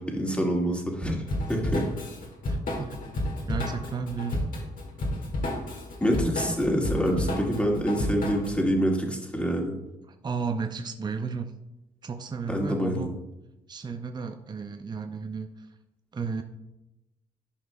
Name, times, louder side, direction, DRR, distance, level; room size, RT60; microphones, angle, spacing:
voice 1, 0.0-1.8 6.0-9.7 12.5-13.1, equal, 5° left, 0 dB, 1.8 m, -26 dB
Drum kit / Drum, 1.3-8.6, left 1 dB, 65° left, 1.7 m, -31 dB
voice 2, 2.5-3.0 3.5-4.4 6.5-6.9 10.1-11.5 12.0-13.2 13.7-15.5 16.1-16.4, right 5 dB, 30° right, 7 dB, 0.5 m, -33 dB
11.0 x 5.1 x 2.2 m, 0.95 s
supercardioid pair, 65°, 15 cm